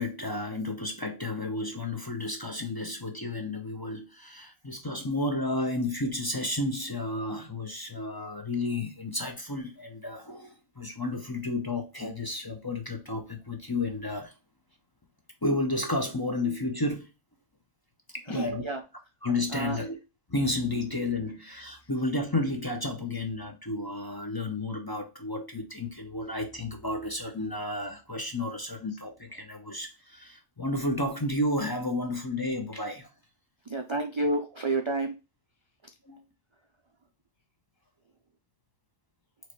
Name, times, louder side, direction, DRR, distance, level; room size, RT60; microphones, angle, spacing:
voice 1, 0.0-14.3 15.4-17.1 18.1-18.6 19.2-19.9 20.3-33.1 36.0-36.3, left 2 dB, 25° left, 0.6 m, -32 dB
voice 2, 18.3-18.8 19.5-19.8 33.7-35.1, right 2 dB, 40° right, 0.4 m, -29 dB
4.6 x 3.1 x 3.0 m
omnidirectional pair, 1.2 m